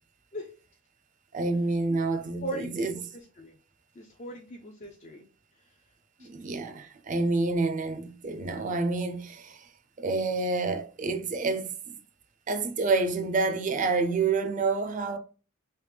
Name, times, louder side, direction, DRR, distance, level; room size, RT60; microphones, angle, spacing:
voice 1, 1.3-3.0 6.2-9.7 10.0-12.0 12.5-15.2, right 3 dB, 40° right, 0.4 m, -28 dB
voice 2, 2.4-3.6 3.9-5.3 5.6-5.7 6.2-6.3, equal, 35° left, 0.4 m, -40 dB
3.4 x 2.9 x 3.2 m
head